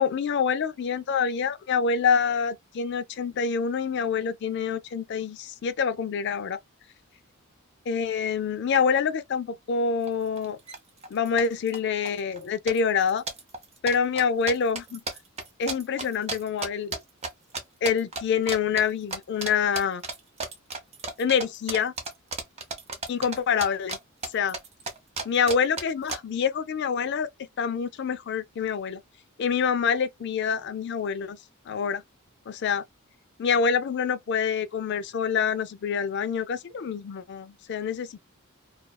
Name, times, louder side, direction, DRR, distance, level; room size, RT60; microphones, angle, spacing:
voice 1, 0.0-6.6 7.9-10.6 11.1-13.2 13.8-15.0 15.6-17.0 17.8-20.0 21.2-21.9 23.1-24.0 24.3-24.6 25.2-27.3 27.6-29.0 29.4-31.4 31.7-32.0 32.5-32.8 33.4-38.2, left 6 dB, 55° left, 0.4 m, -26 dB
sound 1, 10.1-10.2 10.4-10.8 11.0-11.8 12.0-12.4 12.7-17.3 17.5-18.2 18.5-18.8 19.1-19.5 19.7-24.0 24.2-26.2, right 3 dB, 30° right, 0.6 m, -33 dB
2.3 x 2.3 x 2.2 m
head